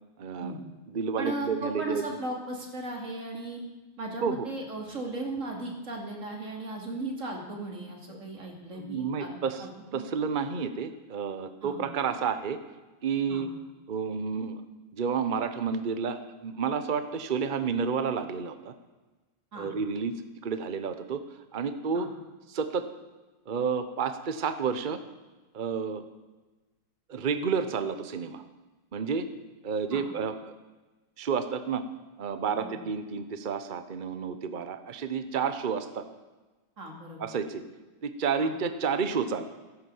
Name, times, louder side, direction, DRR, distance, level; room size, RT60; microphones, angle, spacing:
voice 1, 0.2-0.5 0.9-2.0 4.2-4.5 8.1-8.2 8.7-9.7 9.9-12.6 13.0-13.5 13.9-14.6 14.9-18.7 19.6-20.1 20.4-21.2 21.5-22.1 22.5-22.9 23.5-25.0 25.5-26.0 27.1-28.4 28.9-29.3 29.6-30.5 31.2-31.8 32.2-36.0 37.2-37.6 38.0-39.4, right 6 dB, 65° right, 10 dB, 0.4 m, -30 dB
voice 2, 1.2-3.6 4.0-9.3 9.6-10.0 11.6-11.8 13.3-13.4 19.5-19.7 21.9-22.1 29.9-30.0 32.6-32.8 36.8-37.2 38.4-38.5, right 2 dB, 40° right, 1 dB, 3.1 m, -36 dB
14.5 x 11.0 x 7.8 m, 1.2 s
omnidirectional pair, 2.2 m